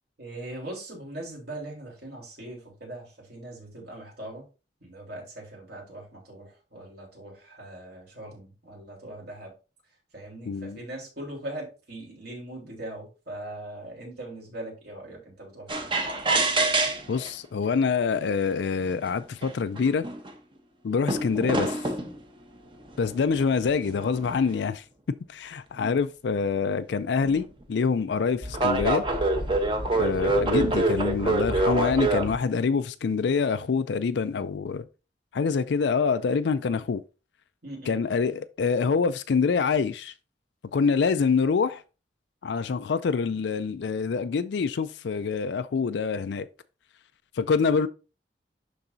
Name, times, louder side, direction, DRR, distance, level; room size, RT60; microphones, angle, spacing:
voice 1, 0.2-4.5 4.8-9.5 10.1-15.9 25.7-26.1 37.6-38.0, right 1 dB, 65° right, 3.6 m, -40 dB
voice 2, 10.5-10.8 17.1-20.1 20.8-21.8 23.0-29.0 29.9-34.9 35.3-37.0 37.9-40.1 40.7-41.8 42.4-46.5 47.4-47.9, left 5 dB, 75° left, 0.4 m, -26 dB
sound 1, 15.7-17.3 18.2-18.3 19.1-19.2 19.4-20.3 21.1-22.1 23.1-24.6 27.2-27.4 28.4-32.4, right 2 dB, 30° right, 1.0 m, -26 dB
11.5 x 3.9 x 2.7 m
head